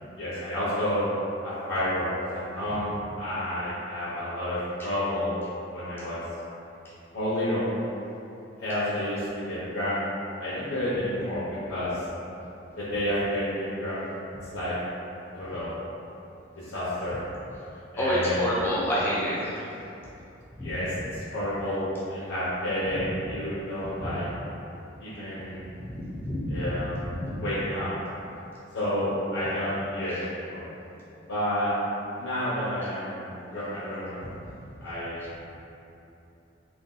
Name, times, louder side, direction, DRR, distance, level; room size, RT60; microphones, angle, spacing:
voice 1, 0.2-1.0 1.4-5.3 5.7-6.2 7.1-7.7 8.6-10.0 10.4-12.1 12.8-14.0 14.5-14.8 15.3-15.7 16.6-17.2 17.9-18.5 20.6-24.3 25.0-25.6 26.5-27.0 27.4-27.9 28.7-30.7 31.3-31.7 32.2-34.2 34.8-35.4, left 1 dB, 85° left, -11 dB, 0.7 m, -30 dB
voice 2, 18.0-19.7 20.6-20.7 22.9-23.1 24.0-24.2 25.3-25.5 25.8-27.3 34.4-34.5, equal, 10° left, -8 dB, 0.3 m, -29 dB
2.6 x 2.2 x 3.7 m, 2.9 s
head